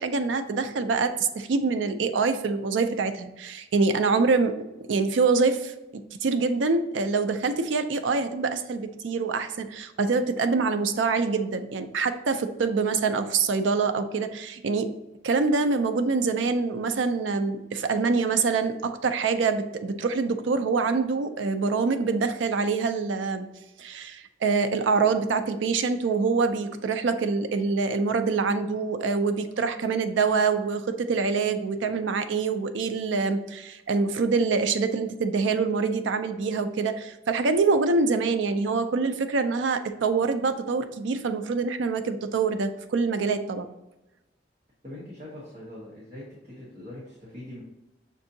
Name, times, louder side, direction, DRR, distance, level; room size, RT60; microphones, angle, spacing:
voice 1, 0.0-15.0 15.2-23.5 23.8-43.7, right 4 dB, 75° right, 9 dB, 0.4 m, -25 dB
voice 2, 44.8-47.6, left 1 dB, 40° right, -7 dB, 1.1 m, -42 dB
6.0 x 2.6 x 2.7 m, 0.99 s
head